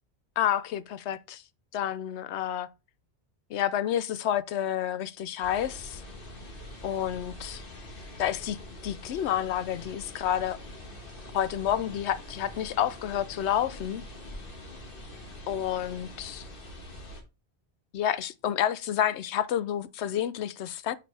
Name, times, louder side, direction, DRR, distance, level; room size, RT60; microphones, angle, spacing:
voice 1, 0.4-1.4 1.7-2.7 3.5-6.0 6.8-7.6 8.2-8.6 8.8-10.6 11.3-14.0 15.5-16.5 17.9-21.0, left 10 dB, 85° left, 0.9 m, -29 dB
sound 1, 5.4-17.2, left 1 dB, 55° left, 1.7 m, -44 dB
8.9 x 5.1 x 3.3 m
omnidirectional pair, 1.1 m